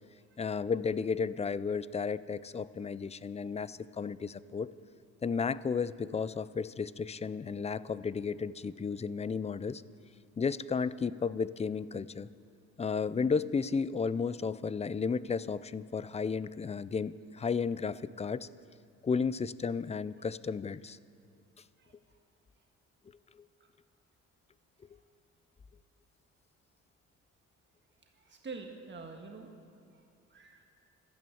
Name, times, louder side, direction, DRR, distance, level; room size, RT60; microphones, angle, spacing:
voice 1, 0.4-4.7 5.2-9.8 10.4-12.3 12.8-18.5 19.0-21.0, left 5 dB, 20° left, 17 dB, 0.4 m, -33 dB
voice 2, 28.1-29.5 30.3-30.7, right 4 dB, 40° right, 2 dB, 1.6 m, -46 dB
12.5 x 12.5 x 7.9 m, 2.7 s
cardioid pair, 90°, 30 cm